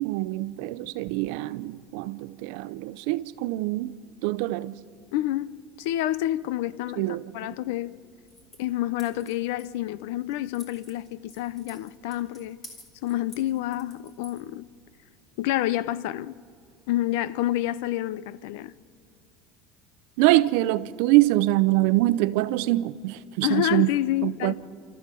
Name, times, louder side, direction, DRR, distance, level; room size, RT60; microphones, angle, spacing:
voice 1, 0.0-3.9 4.2-4.8 7.0-7.2 20.2-23.9 24.2-24.5, right 18 dB, 75° right, 0.6 m, -24 dB
voice 2, 5.1-7.1 7.3-7.9 8.6-12.6 13.0-14.7 15.4-16.4 16.9-18.7 23.4-24.5, left 14 dB, 80° left, 0.6 m, -28 dB
sound 1, 8.2-14.9, left 1 dB, 25° left, 3.7 m, -52 dB
28.5 x 14.0 x 7.6 m
cardioid pair, 160°, 0 cm